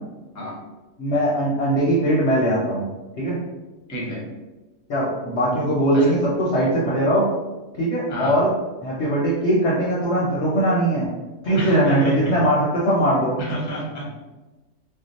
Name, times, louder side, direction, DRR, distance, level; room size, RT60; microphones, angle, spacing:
voice 1, 1.0-2.9 3.2-3.4 4.9-7.3 7.8-8.5 8.8-11.1 11.4-13.4, right 1 dB, 60° left, -5 dB, 0.8 m, -20 dB
voice 2, 3.9-4.2 5.9-6.1 8.1-8.4 11.5-12.4 13.4-14.1, right 1 dB, 15° left, -5 dB, 0.6 m, -29 dB
2.7 x 2.0 x 3.9 m, 1.1 s
omnidirectional pair, 1.6 m